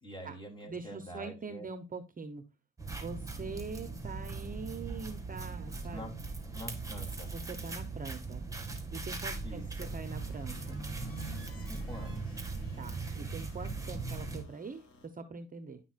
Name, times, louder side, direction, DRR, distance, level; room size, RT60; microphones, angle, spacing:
voice 1, 0.0-1.7 5.9-6.1 6.5-7.3 9.4-9.9 11.5-12.4, equal, 15° left, 0 dB, 3.3 m, -46 dB
voice 2, 0.6-2.4 2.9-6.1 7.3-8.4 8.9-10.8 12.8-15.8, right 4 dB, 30° right, 9 dB, 0.8 m, -43 dB
sound 1, 2.8-14.4, right 3 dB, 10° right, 2.0 m, -39 dB
sound 2, 10.1-15.1, left 2 dB, 50° left, 2.5 m, -59 dB
10.5 x 5.9 x 2.4 m, 0.27 s
cardioid pair, 90°, 30 cm